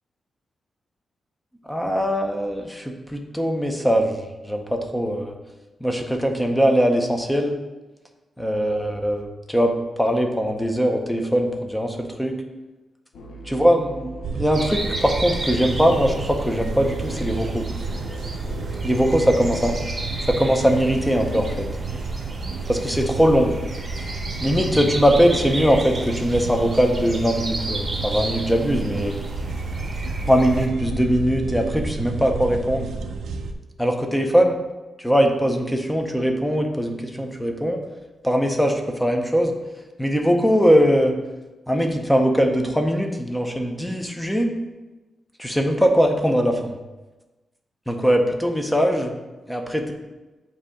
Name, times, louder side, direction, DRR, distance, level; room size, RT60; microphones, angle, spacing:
voice 1, 1.7-4.2 4.4-5.3 5.8-7.6 8.4-12.4 13.5-17.7 18.8-19.7 20.3-21.7 22.7-23.5 24.4-29.1 30.3-32.9 33.8-34.5 35.0-37.8 38.2-39.5 40.0-41.2 41.7-44.5 45.4-46.8 47.9-49.1 49.5-49.9, equal, 5° left, 3 dB, 0.6 m, -21 dB
sound 1, 13.1-19.8, right 1 dB, 70° left, 0.7 m, -37 dB
sound 2, 14.2-33.5, right 3 dB, 90° right, 0.4 m, -30 dB
sound 3, 14.5-30.7, right 2 dB, 20° right, 0.9 m, -35 dB
7.4 x 2.7 x 5.0 m, 1.1 s
wide cardioid pair, 150°, 0 cm